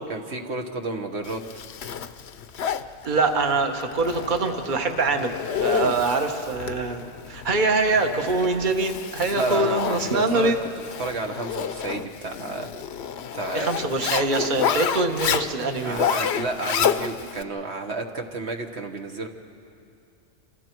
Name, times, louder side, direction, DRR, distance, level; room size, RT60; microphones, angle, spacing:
voice 1, 0.1-1.4 9.3-12.7 13.3-14.0 15.8-19.3, right 2 dB, 70° right, 3 dB, 1.4 m, -31 dB
Zipper (clothing), 1.2-17.4, left 8 dB, 70° left, 0.9 m, -30 dB
voice 2, 3.0-5.3 5.6-7.0 7.3-10.5 13.5-16.1, right 3 dB, 45° right, 5 dB, 1.3 m, -24 dB
27.5 x 27.5 x 4.6 m, 2.5 s
omnidirectional pair, 1.2 m